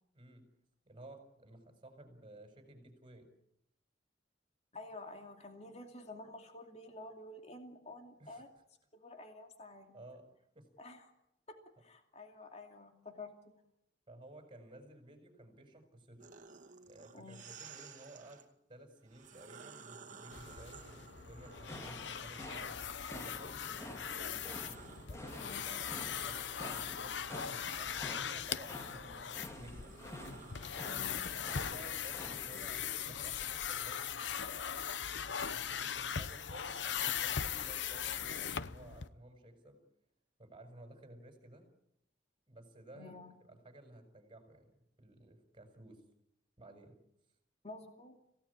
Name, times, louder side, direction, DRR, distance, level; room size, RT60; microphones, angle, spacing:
voice 1, 0.8-3.3 8.2-8.4 9.9-10.2 10.5-10.7 14.1-16.3 16.8-18.4 18.7-22.7 23.1-24.6 25.1-30.0 31.1-34.8 35.2-39.8 40.4-41.7 42.5-44.7 45.0-46.0 46.6-47.0, right 1 dB, 30° right, 5 dB, 6.6 m, -55 dB
voice 2, 4.7-8.5 8.9-9.9 10.8-11.1 11.5-13.3 17.1-17.5 25.4-25.6 30.8-31.3 42.9-43.4 47.6-48.2, left 2 dB, 35° left, 4 dB, 2.6 m, -50 dB
sound 1, 16.2-18.5 19.0-23.1 23.6-32.8, right 5 dB, 45° right, 2.3 m, -56 dB
sound 2, 20.3-39.1, left 8 dB, 90° left, 0.8 m, -40 dB
sound 3, 21.4-32.7, left 1 dB, 15° left, 2.1 m, -50 dB
27.0 x 17.5 x 8.7 m, 0.81 s
head